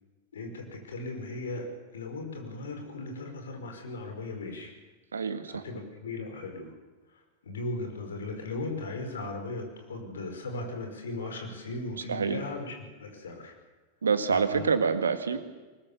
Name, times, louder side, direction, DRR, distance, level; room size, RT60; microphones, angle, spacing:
voice 1, 0.3-1.7 1.9-4.7 5.5-6.7 7.4-13.5 14.3-14.7, left 2 dB, 65° left, 4 dB, 5.3 m, -37 dB
voice 2, 5.1-5.6 12.1-12.4 14.0-15.4, right 5 dB, 70° right, 10 dB, 1.9 m, -26 dB
23.0 x 21.0 x 7.1 m, 1.3 s
figure-of-eight pair, 90°, 0 cm